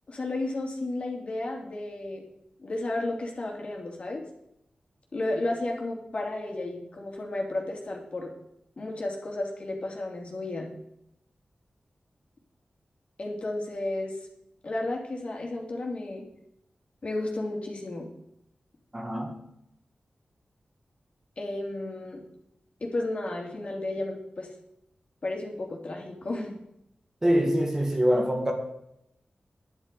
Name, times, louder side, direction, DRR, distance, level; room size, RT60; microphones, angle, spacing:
voice 1, 0.1-2.2 2.6-4.2 5.1-8.3 8.8-10.7 13.2-14.2 14.6-16.3 17.0-18.1 21.4-22.2 22.8-24.5 25.2-26.6, left 2 dB, 45° left, 0 dB, 2.9 m, -33 dB
voice 2, 18.9-19.4 27.2-28.5, equal, 20° right, 2 dB, 2.0 m, -24 dB
10.5 x 10.5 x 5.3 m, 0.80 s
wide cardioid pair, 120°, 3 cm